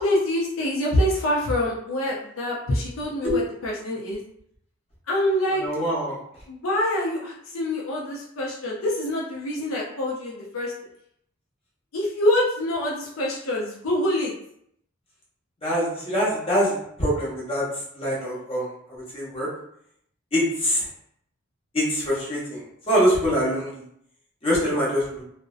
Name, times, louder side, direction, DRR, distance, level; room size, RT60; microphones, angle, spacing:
voice 1, 0.0-4.2 5.1-5.6 6.5-10.7 11.9-14.3, left 1 dB, 75° left, -4 dB, 0.5 m, -25 dB
voice 2, 5.6-6.2 15.6-17.6 18.0-19.5 20.3-20.8 21.7-22.6 22.9-23.8 24.4-25.2, equal, 30° left, -7 dB, 0.9 m, -24 dB
2.5 x 2.0 x 2.4 m, 0.71 s
head